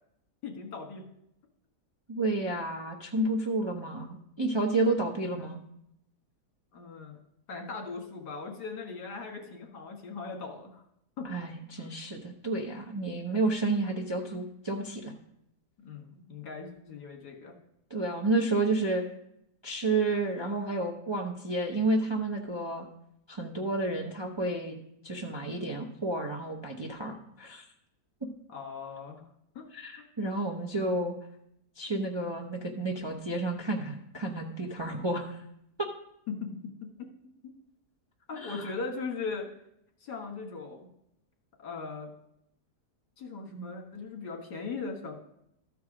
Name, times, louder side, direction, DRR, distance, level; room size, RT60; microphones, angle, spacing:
voice 1, 0.4-1.0 6.7-7.2 7.5-10.8 11.2-11.3 11.8-11.9 15.8-17.5 28.5-29.2 29.6-29.7 36.3-36.6 37.0-37.1 37.4-37.5 38.3-39.5 40.0-40.9 41.6-42.1 43.2-45.1, left 4 dB, 75° left, 2 dB, 2.1 m, -39 dB
voice 2, 2.1-5.6 11.2-15.1 17.9-19.0 19.6-22.8 23.3-24.8 25.0-27.6 29.7-31.1 31.8-35.4 35.8-35.9 38.4-38.7, right 2 dB, 25° right, 0 dB, 0.5 m, -31 dB
13.0 x 4.7 x 4.8 m, 0.76 s
omnidirectional pair, 1.8 m